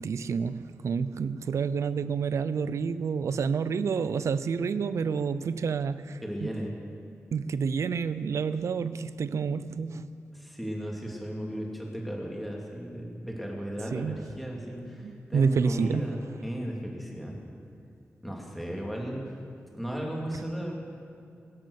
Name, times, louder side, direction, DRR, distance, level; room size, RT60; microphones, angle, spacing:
voice 1, 0.0-6.5 7.3-10.1 13.9-14.2 15.0-16.2, right 6 dB, 90° right, 14 dB, 0.5 m, -29 dB
voice 2, 6.2-6.7 10.3-17.4 18.2-19.2 19.7-20.8, equal, ahead, -2 dB, 2.7 m, -35 dB
23.5 x 8.5 x 6.5 m, 2.5 s
wide cardioid pair, 120°, 5 cm